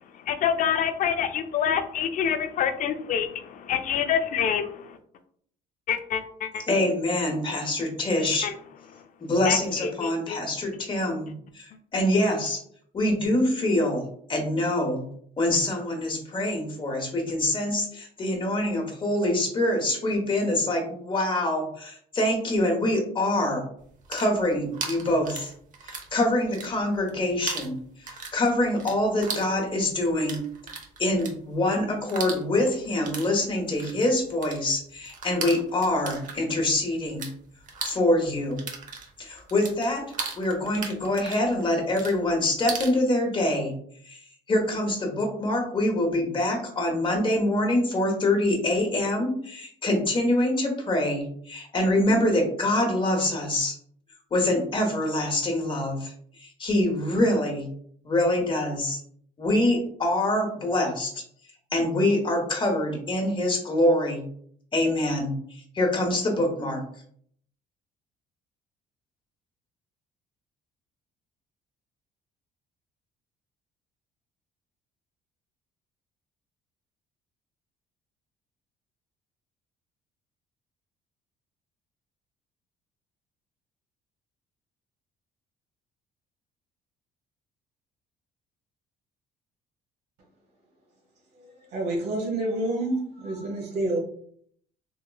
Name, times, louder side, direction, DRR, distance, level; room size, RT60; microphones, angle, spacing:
voice 1, 0.3-5.0 5.9-6.7 8.4-8.5 8.9-9.0 9.4-10.4, left 8 dB, 50° left, 9 dB, 0.4 m, -27 dB
voice 2, 6.7-8.5 9.2-12.6 12.9-15.0 15.4-23.6 24.1-25.5 25.9-30.4 31.0-37.2 37.8-38.6 39.2-40.1 40.4-43.8 44.0-44.2 44.5-53.8 54.3-56.1 56.4-57.7 58.0-59.0 59.4-61.2 61.7-64.2 64.7-66.8, left 1 dB, 30° left, 2 dB, 1.0 m, -25 dB
sound 1, 23.9-26.1 26.4-27.1 27.4-37.3 37.6-43.0, right 5 dB, 50° right, 0.8 m, -37 dB
voice 3, 91.7-94.0, right 2 dB, 90° right, -1 dB, 1.2 m, -28 dB
3.6 x 2.9 x 2.2 m, 0.62 s
cardioid pair, 110°, 17 cm